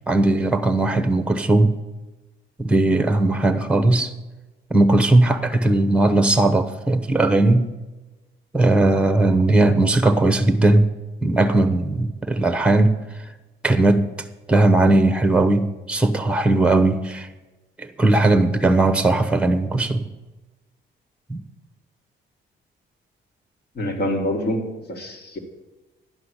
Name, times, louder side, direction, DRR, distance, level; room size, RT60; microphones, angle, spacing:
voice 1, 0.1-1.8 2.6-4.1 4.7-7.7 8.5-10.9 11.2-12.9 13.6-14.1 14.5-17.3 17.8-20.1 21.3-21.4, right 2 dB, 5° right, 10 dB, 0.9 m, -18 dB
voice 2, 23.8-25.4, left 1 dB, 55° left, 4 dB, 2.0 m, -26 dB
11.0 x 5.8 x 8.1 m, 1.1 s
cardioid pair, 90°, 20 cm